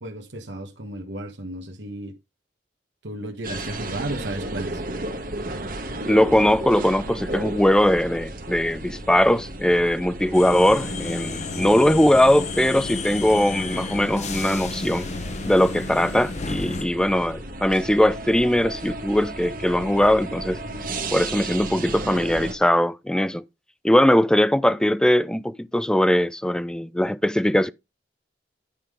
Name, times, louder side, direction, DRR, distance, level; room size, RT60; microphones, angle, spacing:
voice 1, 0.0-2.1 3.0-4.8, right 1 dB, 85° right, 1.3 m, -33 dB
sound 1, 3.4-22.5, right 2 dB, 55° right, 1.5 m, -34 dB
voice 2, 6.1-15.1 15.4-20.6 21.1-23.4 23.8-27.7, left 1 dB, 5° left, 0.3 m, -20 dB
sound 2, 10.3-16.8, left 3 dB, 40° left, 0.8 m, -32 dB
10.0 x 3.7 x 4.9 m
head